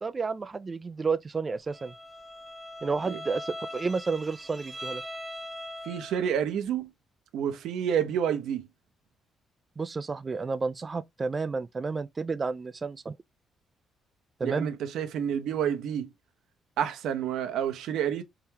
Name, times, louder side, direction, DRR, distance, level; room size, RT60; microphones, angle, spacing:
voice 1, 0.0-1.9 2.8-5.0 9.8-13.1 14.4-14.7, right 4 dB, 30° right, 0.3 m, -31 dB
Bowed string instrument, 1.7-6.4, equal, 5° right, 1.2 m, -41 dB
voice 2, 5.8-6.9 7.3-8.7 14.4-16.1 16.8-18.2, right 9 dB, 85° right, 0.8 m, -29 dB
4.3 x 3.8 x 2.7 m
cardioid pair, 90°, 0 cm